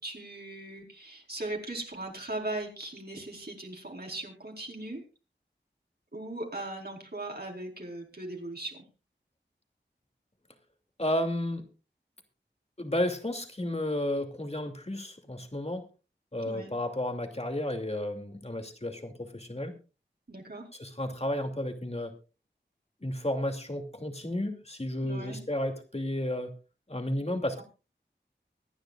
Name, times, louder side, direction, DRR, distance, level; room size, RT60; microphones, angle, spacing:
voice 1, 0.0-5.0 6.1-8.8 16.4-16.7 20.3-20.7 25.0-25.4, right 2 dB, 55° right, 0 dB, 4.6 m, -38 dB
voice 2, 11.0-11.6 12.8-15.8 16.3-19.7 20.8-22.1 23.0-26.5 26.9-27.6, left 1 dB, 35° left, 5 dB, 2.7 m, -32 dB
24.5 x 10.5 x 2.5 m, 0.32 s
wide cardioid pair, 50°, 19 cm